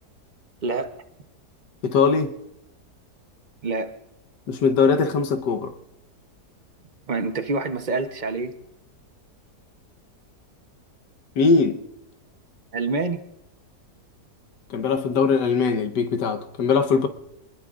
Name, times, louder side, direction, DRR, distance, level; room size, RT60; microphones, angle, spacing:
voice 1, 1.8-2.3 4.5-5.7 11.4-11.8 14.7-17.1, left 5 dB, 90° left, 1.6 m, -21 dB
voice 2, 3.6-3.9 7.1-8.5 12.7-13.2, right 3 dB, 40° right, 0.7 m, -26 dB
27.0 x 20.0 x 2.5 m
omnidirectional pair, 1.8 m